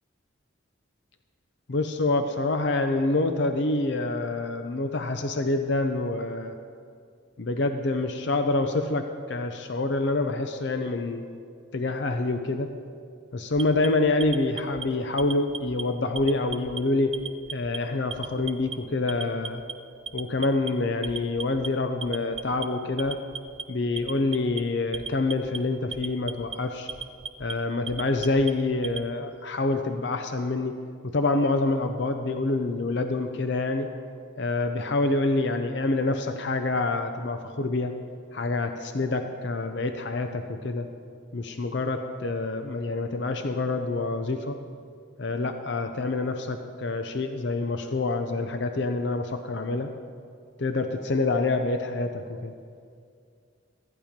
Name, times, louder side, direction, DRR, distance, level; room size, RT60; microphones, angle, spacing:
voice 1, 1.7-6.5 7.4-11.2 11.7-12.7 13.3-17.1 17.5-19.6 20.1-23.2 23.7-26.9 27.4-30.8 31.0-33.9 34.4-37.9 38.3-40.9 41.3-44.6 45.2-49.9 50.6-52.5, left 2 dB, 60° left, 7 dB, 0.6 m, -27 dB
Alarm, 13.5-14.8 15.2-15.8 16.2-16.8 17.1-17.8 18.1-18.8 19.1-19.7 20.1-20.7 21.0-21.7 22.0-22.7 23.0-23.6 24.0-24.6 24.9-25.6 25.9-26.6 26.9-27.5 27.9-29.1, right 6 dB, 30° right, 0.3 m, -36 dB
14.5 x 8.9 x 5.1 m, 2.2 s
head